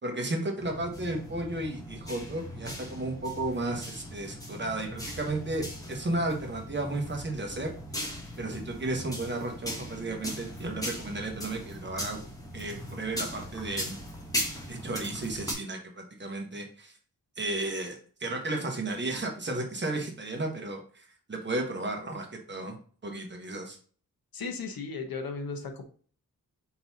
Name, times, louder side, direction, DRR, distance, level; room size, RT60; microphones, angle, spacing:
voice 1, 0.0-7.7 8.4-12.2 12.5-14.0 14.7-16.9 17.4-22.8 23.0-23.8, right 2 dB, 30° right, 2 dB, 1.0 m, -33 dB
sound 1, 0.6-15.5, equal, 10° left, 1.1 m, -39 dB
voice 2, 24.3-25.8, left 4 dB, 80° left, 5 dB, 0.9 m, -35 dB
4.6 x 3.9 x 2.7 m, 0.43 s
wide cardioid pair, 135°, 35 cm